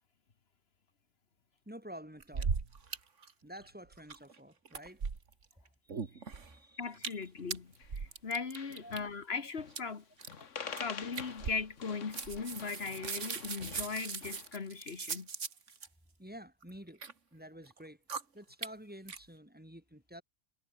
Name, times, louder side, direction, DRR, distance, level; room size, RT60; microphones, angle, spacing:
voice 1, 1.6-2.5 3.4-5.0 5.8-7.2 8.8-9.1 10.4-10.5 13.1-13.2 16.2-17.0 17.3-18.0 18.3-20.2, equal, 5° right, 5.0 m, -50 dB
sound 1, 2.2-3.0 3.2-3.3 3.6-4.4 4.7-5.5 5.9-6.5 6.9-7.2 7.5-9.0 9.7-9.8 10.2-10.4 10.8-10.9 11.1-11.9 12.1-15.9 16.6-17.1 17.7-17.8 18.1-18.2 18.6-18.7 19.1-19.2, right 5 dB, 75° right, 2.2 m, -38 dB
voice 2, 6.8-10.0 10.8-15.3, left 5 dB, 55° left, 1.7 m, -39 dB
sound 2, 7.4-8.0 8.3-8.4 8.6-9.1 9.6-9.9 10.2-14.6, left 6 dB, 75° left, 1.8 m, -47 dB
omnidirectional pair, 1.3 m